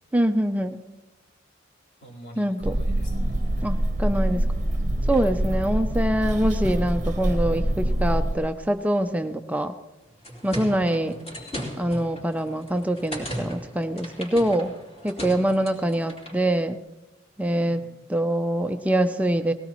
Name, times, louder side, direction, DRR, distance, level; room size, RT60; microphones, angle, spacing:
voice 1, 0.1-0.8 2.4-2.8 3.6-4.4 5.1-9.8 10.4-11.1 11.8-14.7 15.0-16.8 17.4-17.8 18.1-19.5, right 1 dB, 5° right, 7 dB, 0.4 m, -24 dB
voice 2, 2.0-3.7 10.7-11.3 17.6-17.9, right 2 dB, 65° left, -3 dB, 4.0 m, -46 dB
sound 1, 2.6-8.3, right 1 dB, 40° right, 0.8 m, -25 dB
sound 2, 10.0-16.4, equal, 30° left, 3.6 m, -37 dB
19.5 x 17.0 x 3.0 m, 1.1 s
head